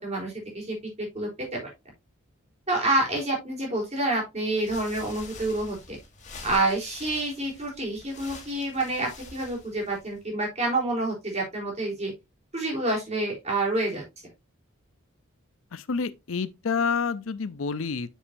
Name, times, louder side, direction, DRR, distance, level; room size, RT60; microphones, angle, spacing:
voice 1, 0.0-1.6 2.7-6.0 6.4-12.1 12.5-14.0, right 2 dB, 30° right, 3.8 m, -28 dB
sound 1, 4.6-10.3, left 3 dB, 35° left, 2.3 m, -46 dB
voice 2, 15.7-18.1, left 5 dB, 70° left, 0.6 m, -28 dB
7.3 x 6.9 x 2.7 m
head